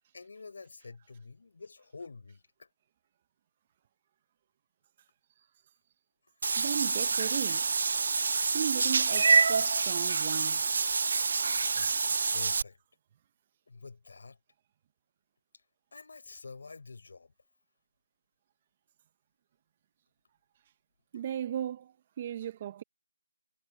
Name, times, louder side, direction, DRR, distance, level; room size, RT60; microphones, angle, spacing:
voice 1, 0.0-2.7 11.7-12.0 12.3-12.8 13.7-14.4 15.9-17.3 21.1-21.2, left 4 dB, 50° left, 4.0 m, -48 dB
Meow / Water / Bathtub (filling or washing), 6.4-12.6, right 4 dB, 40° right, 0.3 m, -27 dB
voice 2, 6.6-7.7 8.5-10.7 21.1-22.8, right 10 dB, 20° right, 0.8 m, -36 dB
figure-of-eight pair, 170°, 0 cm